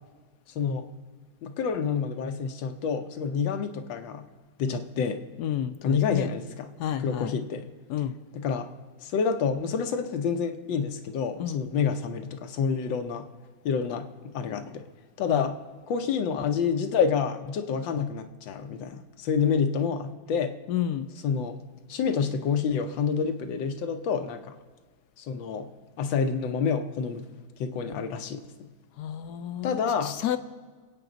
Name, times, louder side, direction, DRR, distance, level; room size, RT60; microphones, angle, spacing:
voice 1, 0.5-0.9 1.4-4.3 4.6-5.2 5.8-6.7 7.0-7.7 8.3-8.7 9.0-13.3 13.6-14.1 14.3-14.8 15.2-15.6 15.9-20.6 21.2-21.6 21.9-24.5 25.2-25.7 26.0-27.2 27.6-28.7 29.6-30.2, left 6 dB, 90° left, 8 dB, 1.6 m, -28 dB
voice 2, 5.4-6.3 6.8-7.3 7.9-8.1 11.4-11.6 15.3-15.5 20.7-21.1 29.0-30.4, left 10 dB, 70° left, 11 dB, 1.1 m, -31 dB
22.5 x 8.6 x 3.9 m, 1.5 s
omnidirectional pair, 2.0 m